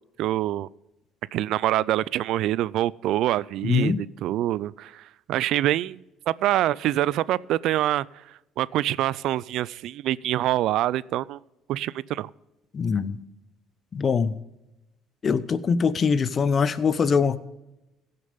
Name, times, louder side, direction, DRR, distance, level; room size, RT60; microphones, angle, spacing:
voice 1, 0.2-0.7 1.3-8.1 8.6-11.4 11.7-12.3, right 14 dB, 70° right, 22 dB, 0.3 m, -25 dB
voice 2, 3.6-4.0 12.7-13.2 13.9-14.3 15.2-17.4, left 6 dB, 40° left, 16 dB, 0.7 m, -23 dB
15.5 x 6.7 x 5.2 m, 0.96 s
supercardioid pair, 85°, 0 cm